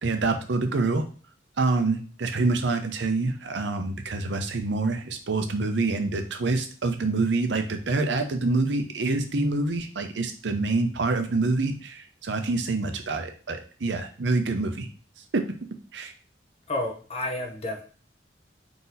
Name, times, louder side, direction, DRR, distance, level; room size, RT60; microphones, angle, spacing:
voice 1, 0.0-1.0 1.6-14.9 15.3-15.4 15.9-16.1, right 3 dB, 80° right, 7 dB, 0.7 m, -26 dB
voice 2, 16.7-17.8, left 1 dB, 35° left, 2 dB, 0.9 m, -30 dB
3.9 x 2.9 x 3.9 m, 0.40 s
head